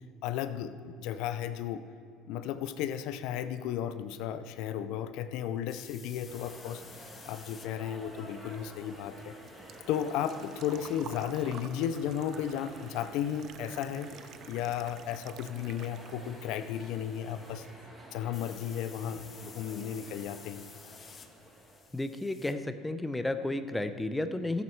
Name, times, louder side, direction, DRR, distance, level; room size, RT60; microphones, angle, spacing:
voice 1, 0.0-1.8 2.3-6.8 7.3-9.3 9.9-14.1 14.5-17.7 18.1-20.6, left 9 dB, 70° left, 11 dB, 0.5 m, -34 dB
sound 1, 5.7-17.8 18.3-22.5, left 5 dB, 35° left, 0.9 m, -56 dB
sound 2, 6.2-21.8, right 1 dB, 10° right, 2.2 m, -51 dB
Engine / Trickle dribble / Fill (with liquid), 8.5-16.5 16.8-17.8 18.1-18.2 20.1-20.2 20.3-20.7 21.1-21.2 21.4-21.5, right 9 dB, 55° right, 0.5 m, -51 dB
voice 2, 21.9-24.6, left 2 dB, 10° left, 9 dB, 0.6 m, -32 dB
12.5 x 8.3 x 4.6 m, 2.4 s
supercardioid pair, 100°, 0 cm